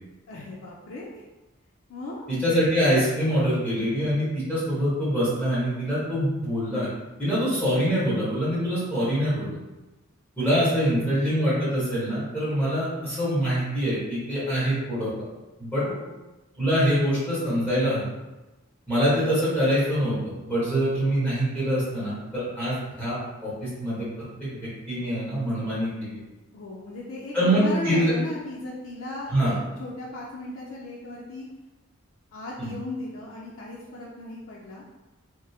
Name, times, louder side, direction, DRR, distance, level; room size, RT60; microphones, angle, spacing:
voice 1, 0.3-1.2 1.9-2.3 10.7-11.2 15.8-16.2 26.5-31.5 32.3-34.8, left 2 dB, 75° left, -4 dB, 0.4 m, -37 dB
voice 2, 2.3-6.9 7.2-9.5 10.4-15.1 15.6-15.8 16.6-18.0 18.9-23.2 23.4-24.1 24.4-24.5 24.9-26.2 27.3-28.1 29.3-29.5 32.6-32.8, equal, 10° left, -11 dB, 1.1 m, -24 dB
3.5 x 2.0 x 2.7 m, 1.1 s
head